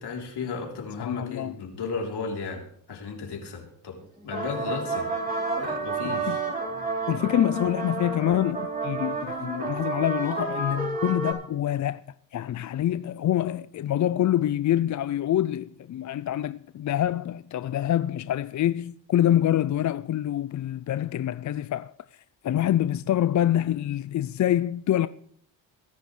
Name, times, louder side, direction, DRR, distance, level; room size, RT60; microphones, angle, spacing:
voice 1, 0.0-4.0 4.2-5.1 5.5-6.4, left 4 dB, 60° left, 3.7 m, -34 dB
voice 2, 1.0-1.5 6.0-6.4 7.1-12.0 12.3-25.1, left 12 dB, 40° left, 0.5 m, -26 dB
sound 1, 4.2-11.3, right 3 dB, 20° right, 4.4 m, -30 dB
22.5 x 10.0 x 3.3 m
supercardioid pair, 75°, 45 cm